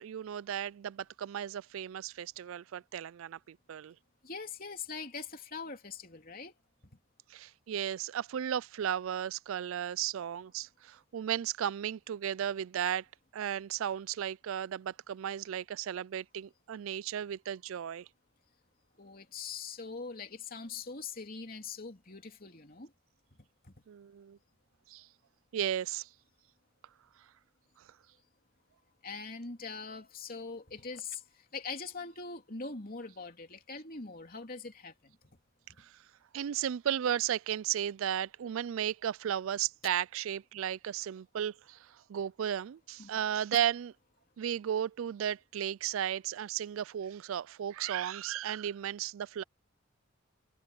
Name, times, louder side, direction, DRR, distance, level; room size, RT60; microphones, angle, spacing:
voice 1, 0.0-3.9 7.3-13.1 13.3-18.1 23.9-24.4 24.9-25.1 25.5-26.1 35.8-35.9 36.3-43.9 44.4-49.4, right 9 dB, 70° right, 0.3 m, -35 dB
voice 2, 4.2-6.5 19.0-22.9 23.6-23.7 29.0-35.2 43.0-43.1, left 4 dB, 40° left, 3.1 m, -42 dB
head